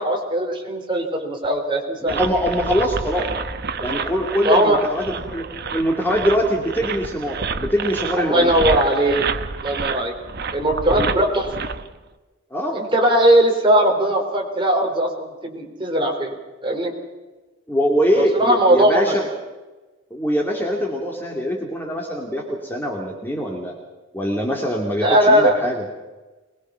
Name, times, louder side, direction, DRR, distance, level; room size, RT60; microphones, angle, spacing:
voice 1, 0.0-2.2 4.4-4.8 8.2-9.3 9.6-10.1 10.5-11.5 12.7-16.3 16.6-16.9 18.2-19.1 25.0-25.6, right 1 dB, 25° right, 1 dB, 3.9 m, -19 dB
voice 2, 2.0-3.3 3.8-8.5 10.9-11.1 12.5-12.8 17.7-19.2 20.1-23.8 24.1-25.8, equal, 10° left, 0 dB, 2.6 m, -23 dB
sound 1, 2.1-12.0, right 5 dB, 50° right, 1.0 m, -29 dB
23.0 x 21.0 x 5.8 m, 1.2 s
head